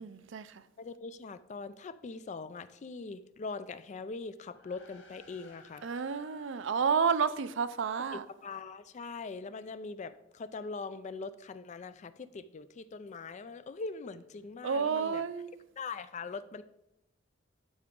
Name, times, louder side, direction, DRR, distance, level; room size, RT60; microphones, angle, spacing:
voice 1, 0.0-0.6 5.8-8.2 14.6-15.6, right 6 dB, 65° right, 0.5 m, -31 dB
voice 2, 0.8-5.8 8.1-15.2 15.8-16.6, left 4 dB, 35° left, 0.4 m, -42 dB
sound 1, 4.4-8.1, left 4 dB, 65° left, 1.8 m, -59 dB
12.0 x 5.0 x 3.7 m
head